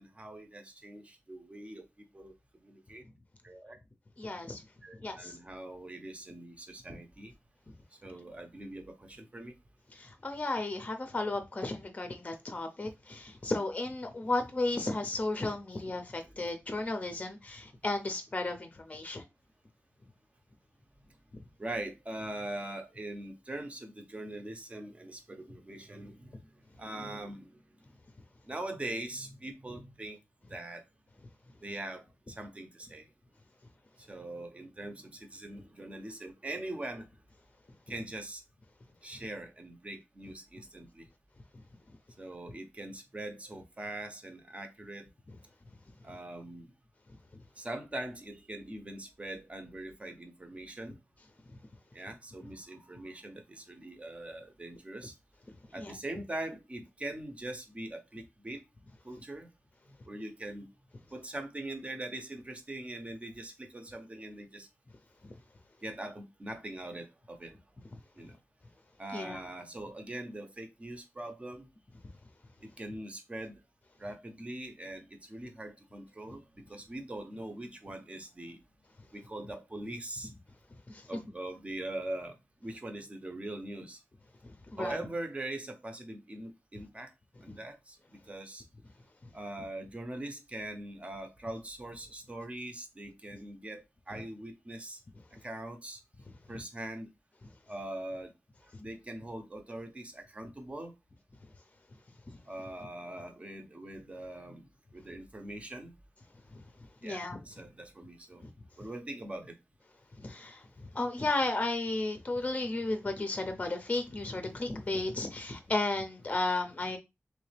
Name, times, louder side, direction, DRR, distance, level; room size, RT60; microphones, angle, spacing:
voice 1, 0.0-2.3 2.6-3.0 3.4-3.8 4.8-7.3 8.0-9.5 16.2-16.4 21.6-26.4 26.8-27.5 28.4-30.2 30.5-30.8 31.6-33.1 34.0-37.1 37.9-38.4 39.0-41.1 42.2-45.1 46.0-46.7 47.6-51.0 51.9-55.1 55.7-58.6 59.0-59.5 60.1-60.7 61.1-64.7 65.8-67.6 68.2-68.4 69.0-71.7 72.6-73.6 74.0-78.6 79.1-80.3 81.1-84.0 84.8-87.1 87.4-88.0 88.3-88.6 89.3-95.0 95.4-96.0 96.5-97.1 97.7-98.3 98.8-100.9 102.5-104.7 104.9-105.9 107.0-108.4 108.8-109.5, right 1 dB, 25° right, 0.7 m, -42 dB
voice 2, 4.2-4.6 5.0-5.4 9.9-19.2 55.7-56.0 69.1-69.4 80.9-81.0 84.4-85.0 107.0-107.4 108.4-108.5 110.2-110.6 110.9-117.0, left 2 dB, 30° left, 0.6 m, -34 dB
3.3 x 3.2 x 3.3 m
wide cardioid pair, 125°, 5 cm